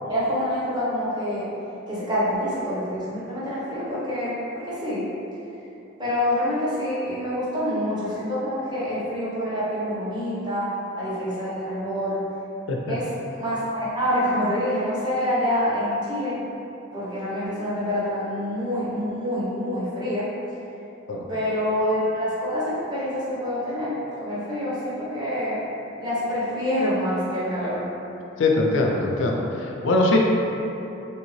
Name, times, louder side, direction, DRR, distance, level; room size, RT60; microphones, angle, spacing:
voice 1, 0.1-1.5 1.9-5.1 6.0-12.2 12.9-13.1 13.4-16.4 16.9-20.3 21.3-25.6 26.0-27.9, equal, 20° right, -9 dB, 0.8 m, -26 dB
voice 2, 28.4-30.2, left 2 dB, 70° left, 0 dB, 0.4 m, -22 dB
3.2 x 2.7 x 3.0 m, 3.0 s
head